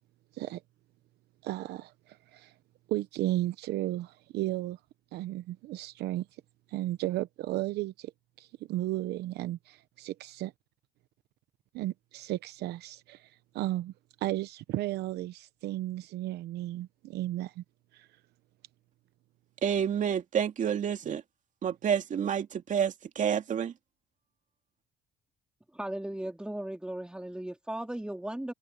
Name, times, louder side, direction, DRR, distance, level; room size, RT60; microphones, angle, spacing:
voice 1, 1.4-2.5 2.9-4.8 5.1-6.3 6.7-8.1 8.4-10.5 11.7-13.9 14.2-17.6 17.9-18.1, right 15 dB, 80° right, 0.9 m, -34 dB
voice 2, 19.6-21.2 21.6-23.7, right 8 dB, 50° right, 2.3 m, -29 dB
voice 3, 25.7-28.5, right 1 dB, 5° right, 3.2 m, -36 dB
cardioid pair, 110°, 17 cm